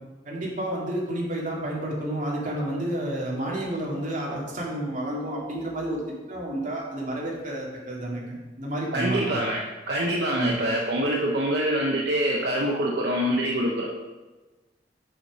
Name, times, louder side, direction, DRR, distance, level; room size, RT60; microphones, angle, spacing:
voice 1, 0.2-9.4 10.3-10.5, right 1 dB, 50° right, -4 dB, 2.2 m, -30 dB
voice 2, 8.9-13.8, right 1 dB, 70° right, -1 dB, 0.8 m, -25 dB
6.8 x 5.5 x 5.2 m, 1.2 s
head